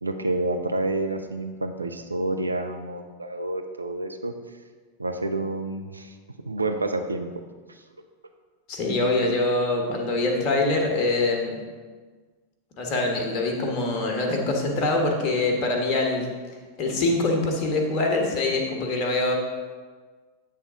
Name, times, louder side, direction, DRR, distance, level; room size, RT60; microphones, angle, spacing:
voice 1, 0.0-4.3 5.0-6.2 6.4-7.3 7.7-7.8, right 2 dB, 80° right, 5 dB, 0.5 m, -29 dB
voice 2, 8.7-11.6 12.8-16.3 16.8-19.4, left 2 dB, 35° left, 1 dB, 1.4 m, -24 dB
8.6 x 3.6 x 5.1 m, 1.5 s
figure-of-eight pair, 90°, 0 cm